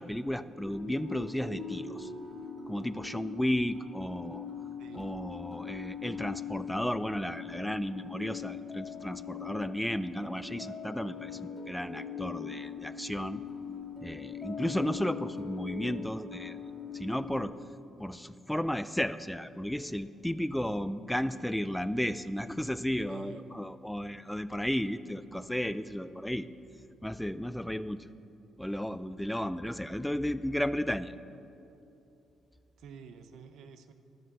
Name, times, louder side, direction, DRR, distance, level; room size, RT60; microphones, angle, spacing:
voice 1, 0.0-2.1 2.7-4.5 4.9-13.4 14.0-16.6 16.9-17.5 18.0-26.5 27.0-28.1 28.6-31.1, equal, 5° left, 14 dB, 0.4 m, -33 dB
sound 1, 0.6-17.4, left 6 dB, 20° left, 2.0 m, -42 dB
voice 2, 4.8-5.1 23.1-23.5 32.8-33.9, right 7 dB, 80° right, 9 dB, 0.7 m, -49 dB
12.5 x 6.7 x 6.6 m, 2.8 s
cardioid pair, 90°, 0 cm